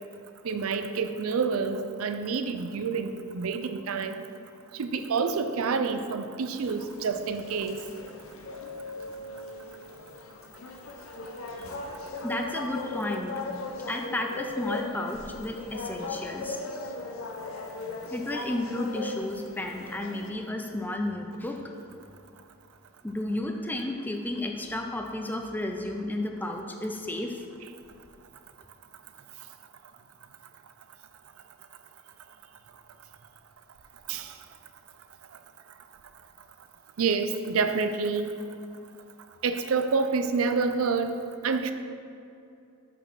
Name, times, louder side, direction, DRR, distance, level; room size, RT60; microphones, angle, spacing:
voice 1, 0.4-4.2 4.7-7.8 34.1-34.3 37.0-38.3 39.4-41.7, right 5 dB, 85° right, 9 dB, 0.5 m, -28 dB
sound 1, 6.6-20.3, left 2 dB, 80° left, 0.8 m, -38 dB
voice 2, 12.2-13.3 13.9-16.6 18.1-21.6 23.0-27.4, left 1 dB, 10° left, 3 dB, 0.5 m, -32 dB
6.2 x 5.5 x 6.1 m, 2.6 s
head